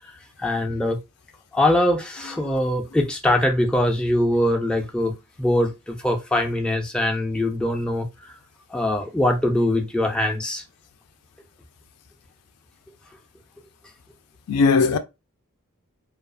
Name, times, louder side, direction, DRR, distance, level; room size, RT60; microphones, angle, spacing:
voice 1, 0.4-1.0 1.5-8.1 8.7-10.6, left 1 dB, 5° left, 0.4 m, -22 dB
voice 2, 2.2-2.6 14.5-15.0, left 4 dB, 85° left, 0.4 m, -20 dB
2.4 x 2.3 x 2.4 m
head